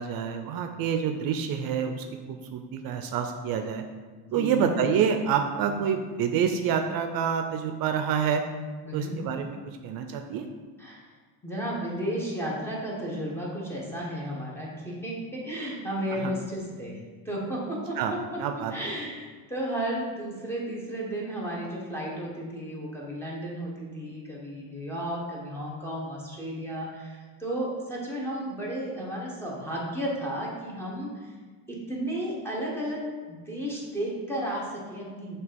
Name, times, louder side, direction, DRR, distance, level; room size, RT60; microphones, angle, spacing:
voice 1, 0.0-3.8 4.3-8.4 8.9-10.5 16.1-16.3 18.0-18.1 18.4-18.7, right 7 dB, 65° right, 6 dB, 0.5 m, -27 dB
voice 2, 4.3-4.7 8.9-9.2 10.8-11.1 11.4-17.0 17.2-18.4 18.7-31.3 31.7-33.0 33.3-35.4, right 1 dB, 5° left, -5 dB, 1.3 m, -33 dB
6.4 x 2.9 x 5.2 m, 1.4 s
cardioid pair, 140°, 39 cm